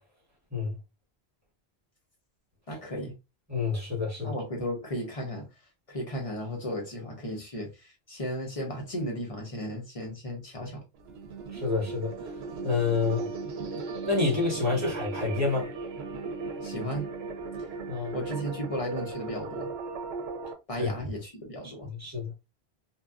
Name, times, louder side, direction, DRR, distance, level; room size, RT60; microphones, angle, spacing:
voice 1, 2.7-3.1 4.2-5.5 5.9-10.8 16.6-17.1 18.1-19.7 20.7-21.9, equal, 35° left, 0.8 m, -35 dB
voice 2, 3.5-4.3 11.5-12.1 12.6-13.3 14.0-15.7 17.9-18.1 20.8-20.9 21.6-22.3, left 4 dB, 15° right, 1.1 m, -28 dB
sound 1, 10.9-20.5, right 4 dB, 75° right, 0.9 m, -37 dB
2.7 x 2.5 x 2.3 m
omnidirectional pair, 1.1 m